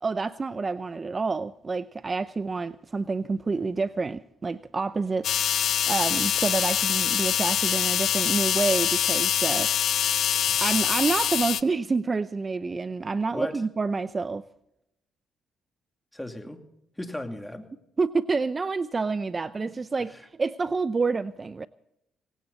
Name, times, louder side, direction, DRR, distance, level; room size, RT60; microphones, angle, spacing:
voice 1, 0.0-5.3 5.9-9.7 10.6-14.4 18.0-20.1 20.4-21.7, right 4 dB, 30° right, 0.6 m, -28 dB
sound 1, 5.2-11.6, left 9 dB, 65° left, 0.5 m, -24 dB
voice 2, 13.3-13.6 16.1-16.6 17.0-17.7 19.6-19.7 20.1-20.2, left 1 dB, 10° left, 2.5 m, -36 dB
18.5 x 16.5 x 4.0 m
supercardioid pair, 70°, 0 cm